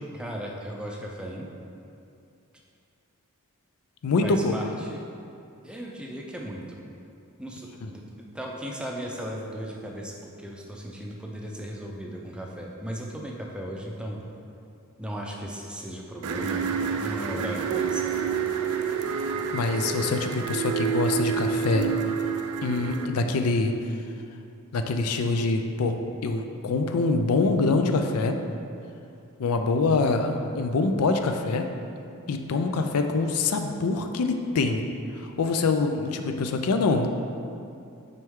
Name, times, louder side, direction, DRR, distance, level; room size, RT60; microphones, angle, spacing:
voice 1, 0.1-1.5 4.2-5.0 5.6-6.8 7.4-8.1 8.3-14.3 15.0-16.7 17.0-18.2, right 1 dB, 5° right, -1 dB, 0.5 m, -36 dB
voice 2, 4.0-4.5 7.8-7.9 19.5-21.9 22.6-23.7 24.7-28.4 29.4-31.7 32.3-34.8 35.2-37.1, left 3 dB, 80° left, 6 dB, 0.4 m, -25 dB
sound 1, 16.2-23.0, right 6 dB, 75° right, 0.4 m, -28 dB
6.1 x 4.4 x 3.6 m, 2.6 s
head